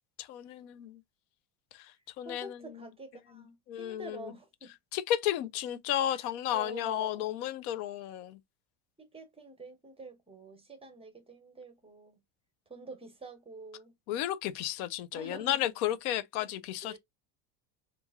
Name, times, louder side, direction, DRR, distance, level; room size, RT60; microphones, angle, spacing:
voice 1, 0.2-1.0 1.7-1.9 2.2-2.8 3.7-4.3 4.9-8.4 14.1-17.0, left 12 dB, 75° left, 0.7 m, -33 dB
voice 2, 2.2-4.7 6.1-6.2 6.5-7.2 9.0-12.2 12.7-13.9 15.1-15.6 16.4-16.5 16.8-17.0, right 3 dB, 15° right, 0.9 m, -47 dB
3.0 x 2.6 x 3.5 m
supercardioid pair, 125°, 44 cm